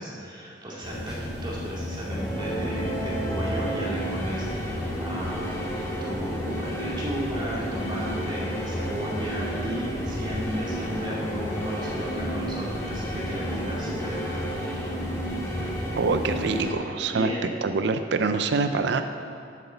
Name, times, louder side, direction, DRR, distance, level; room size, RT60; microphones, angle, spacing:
voice 1, 0.0-5.6 6.0-15.0 17.1-17.4, equal, 25° right, -5 dB, 2.3 m, -35 dB
sound 1, 0.8-16.6, left 1 dB, 5° right, 2.4 m, -35 dB
sound 2, 2.1-16.7, right 1 dB, 15° left, 1.4 m, -32 dB
voice 2, 15.9-17.3 17.6-19.0, right 4 dB, 70° right, 8 dB, 0.5 m, -25 dB
8.1 x 7.3 x 6.9 m, 2.5 s
head